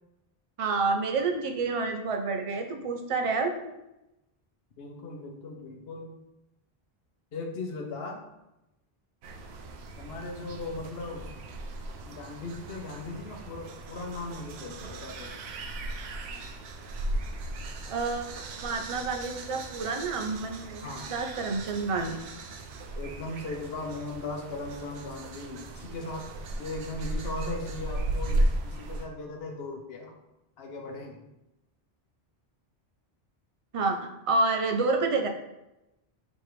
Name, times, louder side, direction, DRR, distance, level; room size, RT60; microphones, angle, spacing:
voice 1, 0.6-3.7 17.9-22.2 33.7-35.3, right 3 dB, 50° right, 4 dB, 0.4 m, -29 dB
voice 2, 4.8-6.1 7.3-8.2 10.0-11.3 12.1-15.4 20.8-21.1 23.0-26.3 26.6-30.1 30.6-31.2, left 2 dB, 75° left, 2 dB, 1.0 m, -38 dB
sound 1, 9.2-29.1, right 1 dB, 85° right, 0.8 m, -36 dB
3.5 x 3.1 x 4.8 m, 0.93 s
omnidirectional pair, 1.1 m